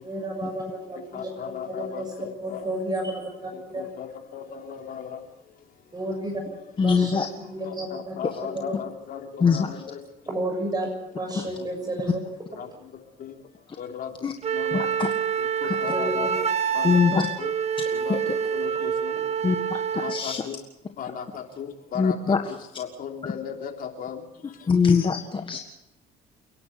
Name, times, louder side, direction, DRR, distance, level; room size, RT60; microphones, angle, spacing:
voice 1, 0.0-1.3 1.7-2.1 2.4-3.9 5.9-6.4 6.8-7.3 7.5-8.2 8.5-8.7 10.3-10.9 11.2-12.2 15.9-16.3 18.7-18.8, right 1 dB, 25° right, 2 dB, 6.8 m, -31 dB
voice 2, 1.1-2.7 3.5-5.2 7.6-10.0 11.3-11.7 12.6-12.7 13.2-13.3 13.8-14.9 15.4-16.3 16.7-17.5 17.9-18.2 18.5-19.1 20.0-20.6 21.0-24.2, left 8 dB, 60° left, 4 dB, 3.4 m, -37 dB
voice 3, 6.8-7.3 9.4-9.7 14.2-14.3 14.7-15.1 15.6-15.8 16.8-17.2 18.1-18.2 19.4-19.6 19.9-20.4 21.9-22.5 24.7-25.6, left 5 dB, 30° left, 5 dB, 1.7 m, -22 dB
Wind instrument woodwind instrument, 14.4-20.2, right 7 dB, 40° right, 1.5 m, -27 dB
29.0 x 11.0 x 8.3 m, 0.88 s
cardioid pair, 110°, 17 cm